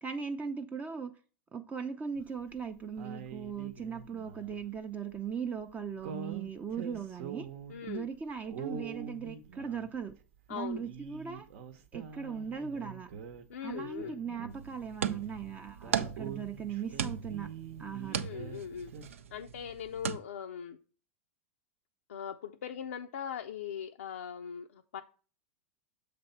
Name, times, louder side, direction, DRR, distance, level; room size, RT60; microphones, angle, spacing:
voice 1, 0.0-1.1 1.5-7.5 7.8-10.1 10.5-11.5 11.9-13.1 13.6-17.5 17.8-18.2, right 6 dB, 20° right, 7 dB, 0.5 m, -38 dB
sound 1, 2.1-2.6 3.0-4.8 6.0-7.9 8.4-10.2 10.7-13.4 13.7-14.9 15.2-15.3 15.7-18.6 18.9-19.1, right 6 dB, 65° right, 0.8 m, -45 dB
voice 2, 7.7-8.1 10.5-10.8 13.5-14.2 18.1-18.9 19.3-20.8 22.1-25.0, left 8 dB, 80° left, 3 dB, 0.4 m, -40 dB
sound 2, 14.5-20.2, right 8 dB, 85° right, 0.4 m, -38 dB
6.8 x 3.4 x 5.6 m, 0.38 s
hypercardioid pair, 100°, 7 cm